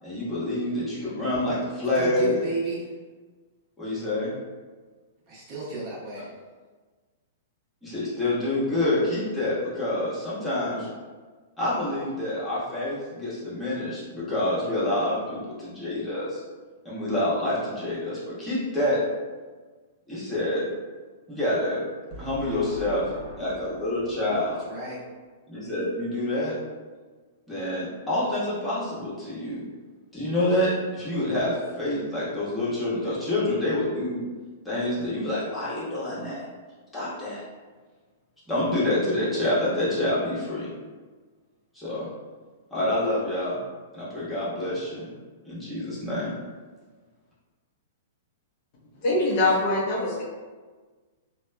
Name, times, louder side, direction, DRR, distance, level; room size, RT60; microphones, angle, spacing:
voice 1, 0.0-2.3 3.8-4.3 7.8-10.9 11.6-16.4 16.8-19.0 20.1-20.6 21.3-21.9 22.2-23.0 23.4-24.6 25.5-26.5 27.5-29.6 30.1-34.2 34.6-36.4 36.9-37.4 38.5-40.7 41.7-42.1 42.7-43.6 43.9-45.1 45.4-46.3, left 1 dB, 5° left, -10 dB, 1.2 m, -27 dB
voice 2, 1.9-2.9 5.3-6.3 22.1-25.0, right 3 dB, 35° right, -7 dB, 1.0 m, -34 dB
voice 3, 49.0-50.2, left 2 dB, 50° left, -4 dB, 0.7 m, -23 dB
2.9 x 2.3 x 2.2 m, 1.4 s
hypercardioid pair, 125°, 0 cm